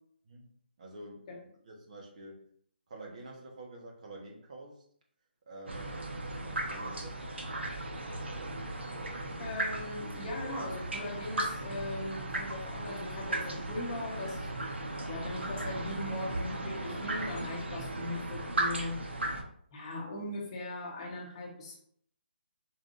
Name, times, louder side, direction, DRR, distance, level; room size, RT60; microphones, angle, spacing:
voice 1, 0.2-2.4 2.9-4.8 5.5-7.4, right 1 dB, 40° right, -1 dB, 1.2 m, -49 dB
sound 1, 5.7-19.4, right 1 dB, 90° right, 0.9 m, -36 dB
voice 2, 9.4-14.5 15.1-19.0 19.7-21.8, left 2 dB, 30° left, -2 dB, 1.2 m, -39 dB
4.7 x 3.5 x 2.6 m, 0.63 s
hypercardioid pair, 165°, 6 cm